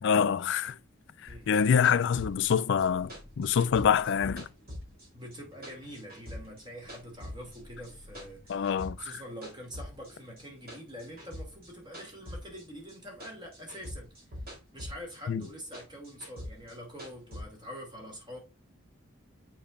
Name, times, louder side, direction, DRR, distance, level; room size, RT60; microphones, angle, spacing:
voice 1, 0.0-0.8 1.2-4.5 8.5-9.1 15.3-15.4, left 7 dB, 60° left, 0.4 m, -26 dB
sound 1, 1.3-5.4 5.6-7.6 7.8-9.2 9.4-13.0 13.2-15.2 15.4-17.4, left 1 dB, 45° right, 3.4 m, -43 dB
sound 2, 1.5-9.1, left 1 dB, 65° right, 4.0 m, -56 dB
voice 2, 5.1-8.7 9.0-18.4, equal, 20° right, 2.4 m, -45 dB
7.0 x 5.6 x 2.4 m
head